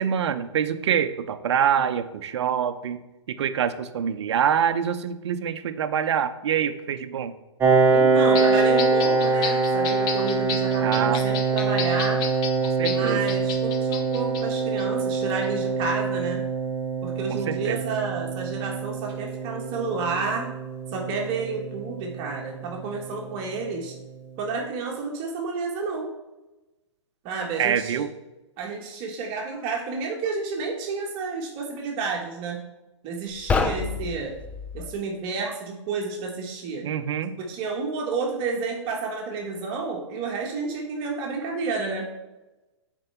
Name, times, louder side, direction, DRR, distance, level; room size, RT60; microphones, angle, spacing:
voice 1, 0.0-3.0 3.3-7.3 10.8-11.2 12.6-13.3 17.3-17.8 27.6-28.1 36.8-37.3, right 8 dB, 65° right, 11 dB, 0.7 m, -25 dB
Piano, 7.6-23.0, right 4 dB, 15° right, 1.0 m, -24 dB
voice 2, 7.9-12.3 12.9-16.5 17.0-20.5 20.9-23.9 24.4-26.1 27.2-28.0 28.6-32.6 33.0-34.3 34.7-36.9 37.4-42.1, right 4 dB, 35° right, 0 dB, 1.3 m, -30 dB
sound 1, 8.3-14.8 15.2-15.4, left 6 dB, 30° left, 0.7 m, -34 dB
sound 2, 33.3-35.0, left 4 dB, 10° left, 0.3 m, -27 dB
7.7 x 4.6 x 4.4 m, 1.1 s
hypercardioid pair, 125°, 15 cm